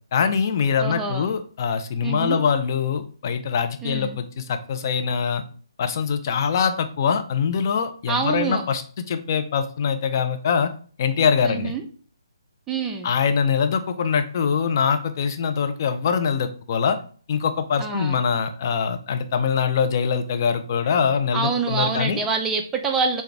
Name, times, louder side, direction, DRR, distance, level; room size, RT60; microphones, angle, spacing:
voice 1, 0.1-5.4 5.8-8.8 9.1-10.7 11.0-11.7 13.0-17.0 17.3-22.2, left 6 dB, 40° left, 7 dB, 0.5 m, -23 dB
voice 2, 0.8-1.3 2.0-2.4 3.8-4.2 8.1-8.6 11.4-11.8 12.7-13.1 17.8-18.2 21.3-23.2, right 5 dB, 10° right, 4 dB, 0.4 m, -26 dB
6.8 x 2.3 x 3.4 m, 0.42 s
figure-of-eight pair, 140°, 3 cm